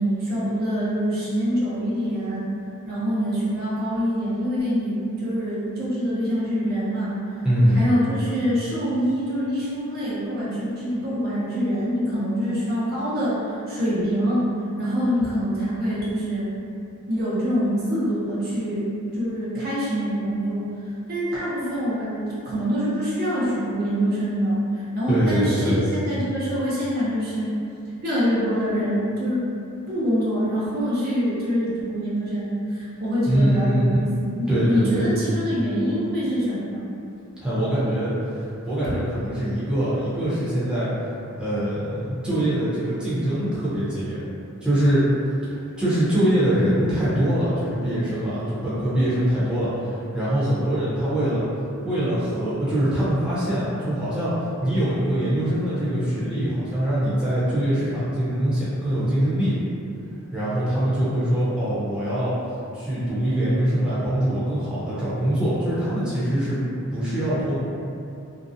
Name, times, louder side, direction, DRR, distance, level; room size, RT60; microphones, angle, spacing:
voice 1, 0.0-2.4 2.8-7.2 7.7-14.5 14.8-16.5 17.1-18.8 19.1-20.7 21.1-27.6 28.0-29.5 29.9-36.9 38.8-38.9, equal, 45° right, -9 dB, 0.6 m, -25 dB
voice 2, 7.4-7.8 25.1-25.8 33.3-34.1 34.5-35.1 37.4-38.1 38.4-40.9 41.4-44.2 44.6-45.0 45.5-51.4 51.8-54.3 54.6-59.6 60.3-62.3 62.7-66.6 66.9-67.6, right 1 dB, 5° right, -12 dB, 0.6 m, -23 dB
2.6 x 2.0 x 2.6 m, 2.6 s
head